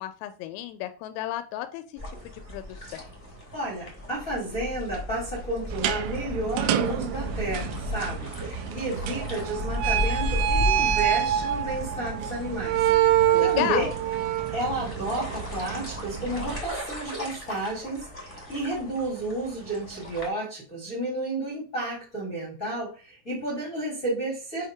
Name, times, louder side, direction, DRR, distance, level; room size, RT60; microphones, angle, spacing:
voice 1, 0.0-3.0 13.3-13.9, left 13 dB, 85° left, 9 dB, 3.3 m, -33 dB
sound 1, 1.9-20.3, left 1 dB, 20° left, 0.9 m, -35 dB
voice 2, 3.5-13.8 14.5-24.7, right 1 dB, 45° left, -4 dB, 1.0 m, -32 dB
sound 2, 5.7-16.6, right 11 dB, 85° right, 2.7 m, -27 dB
7.9 x 2.9 x 5.4 m, 0.35 s
omnidirectional pair, 5.9 m